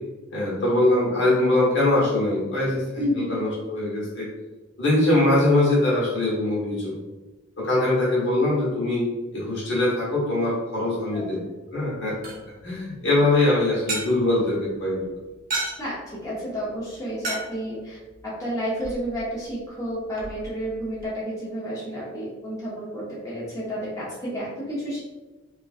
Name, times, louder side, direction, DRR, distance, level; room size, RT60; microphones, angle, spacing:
voice 1, 0.3-4.3 4.8-6.9 7.6-9.1 9.3-12.1 12.6-15.0, left 2 dB, 65° left, -6 dB, 1.2 m, -22 dB
voice 2, 2.9-3.3 11.1-11.2 15.8-18.0 18.2-25.0, equal, 15° left, -8 dB, 0.7 m, -31 dB
sound 1, 11.7-21.1, right 2 dB, 50° right, 0.8 m, -37 dB
2.9 x 2.4 x 2.4 m, 1.2 s
head